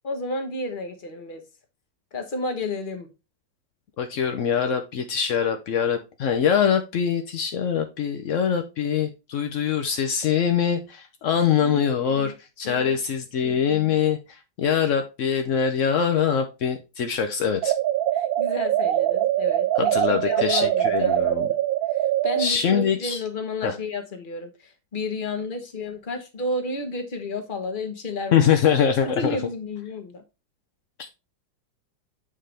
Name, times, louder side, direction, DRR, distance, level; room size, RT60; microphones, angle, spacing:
voice 1, 0.0-1.4 2.1-3.1 12.1-12.3 12.6-13.0 18.1-21.6 21.9-28.5 29.1-30.2, left 2 dB, 35° left, 1.0 m, -32 dB
voice 2, 4.0-17.7 19.8-21.5 22.4-23.2 23.6-23.8 28.3-29.4, left 7 dB, 75° left, 0.7 m, -23 dB
sound 1, 17.6-22.5, right 12 dB, 90° right, 0.7 m, -23 dB
7.7 x 5.1 x 3.3 m
omnidirectional pair, 2.1 m